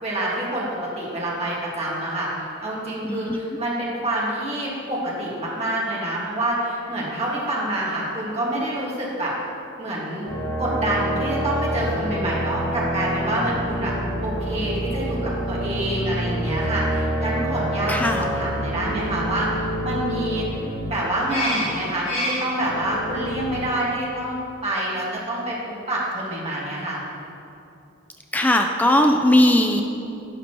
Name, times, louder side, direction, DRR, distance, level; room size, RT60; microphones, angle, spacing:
voice 1, 0.0-9.3 9.8-10.3 10.6-13.9 14.2-20.6 20.9-25.5 25.9-27.0, right 1 dB, 30° right, -6 dB, 1.7 m, -27 dB
voice 2, 3.0-3.4 17.9-18.3 28.3-29.8, left 1 dB, 10° left, 4 dB, 0.3 m, -18 dB
sound 1, 10.2-23.6, equal, 30° left, 1.9 m, -27 dB
11.0 x 6.7 x 3.0 m, 2.7 s
head